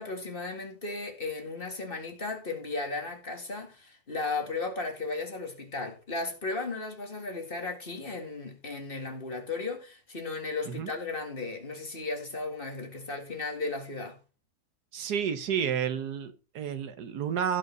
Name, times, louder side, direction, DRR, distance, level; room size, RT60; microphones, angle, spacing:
voice 1, 0.0-14.2, left 3 dB, 35° left, 2.0 m, -35 dB
voice 2, 14.9-17.6, right 8 dB, 85° right, 1.6 m, -31 dB
16.0 x 5.4 x 3.9 m
omnidirectional pair, 1.7 m